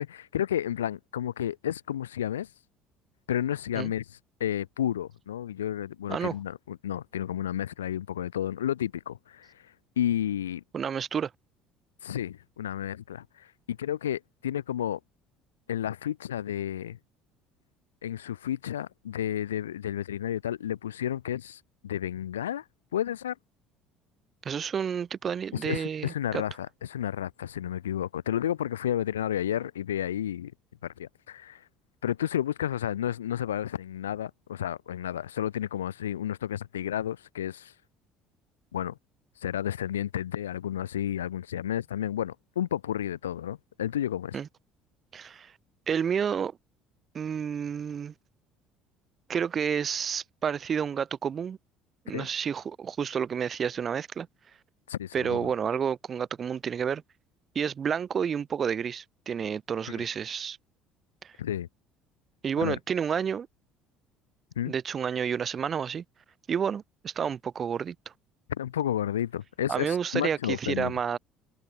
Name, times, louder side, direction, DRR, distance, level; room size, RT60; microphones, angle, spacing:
voice 1, 0.0-2.5 3.3-4.0 4.4-9.5 10.0-10.6 12.0-15.0 15.7-17.0 18.0-22.6 22.9-23.4 25.6-30.5 30.8-31.6 32.0-37.7 38.7-39.0 39.4-44.4 52.1-52.3 54.9-55.5 60.0-60.1 61.4-61.7 62.6-62.8 64.6-64.7 68.5-70.9, left 10 dB, 80° left, 0.4 m, -31 dB
voice 2, 10.7-11.3 24.4-26.4 44.3-44.5 45.1-45.5 45.9-46.5 47.1-48.1 49.3-51.6 52.1-54.3 55.1-57.0 57.5-60.6 61.2-61.3 62.4-63.5 64.6-66.0 66.5-68.0 69.7-71.2, right 7 dB, 40° right, 0.6 m, -30 dB
figure-of-eight pair, 60°, 0 cm